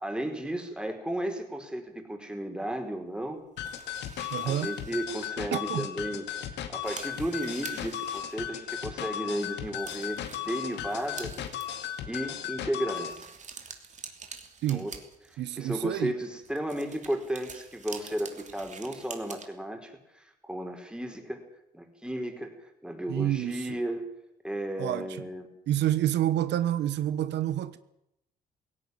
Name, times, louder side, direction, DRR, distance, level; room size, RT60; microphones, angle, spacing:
voice 1, 0.0-3.4 4.4-6.2 6.7-11.3 12.0-13.3 14.7-14.9 15.3-21.4 21.7-22.5 22.8-24.1 24.4-25.5, right 1 dB, 5° right, 4.7 m, -34 dB
sound 1, 3.6-13.2, left 10 dB, 80° left, 2.2 m, -36 dB
sound 2, 3.6-5.3 5.9-6.0 6.3-6.4 6.6-8.9 9.4-9.5 9.8-12.0 12.9-15.6 16.4-19.5, right 5 dB, 40° right, 3.1 m, -46 dB
voice 2, 4.3-4.7 5.5-5.9 14.6-14.9 15.4-16.2 23.1-23.7 24.8-25.3 25.7-27.8, right 12 dB, 80° right, 1.0 m, -28 dB
17.0 x 17.0 x 9.6 m
cardioid pair, 85°, 18 cm